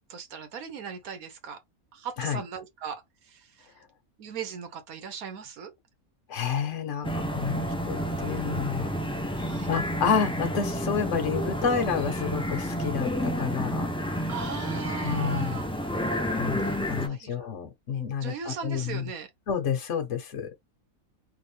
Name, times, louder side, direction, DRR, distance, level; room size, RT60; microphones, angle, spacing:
voice 1, 0.1-1.6 1.9-3.7 4.2-5.7 9.4-9.7 14.3-15.7 16.6-17.5 18.2-19.3, right 6 dB, 85° right, 1.4 m, -38 dB
voice 2, 6.3-8.9 9.2-9.4 9.7-14.3 15.0-15.6 16.3-19.1 19.5-20.5, left 6 dB, 60° left, 1.3 m, -30 dB
sound 1, 7.0-17.1, equal, 10° left, 0.4 m, -30 dB
3.6 x 2.8 x 3.3 m
omnidirectional pair, 1.5 m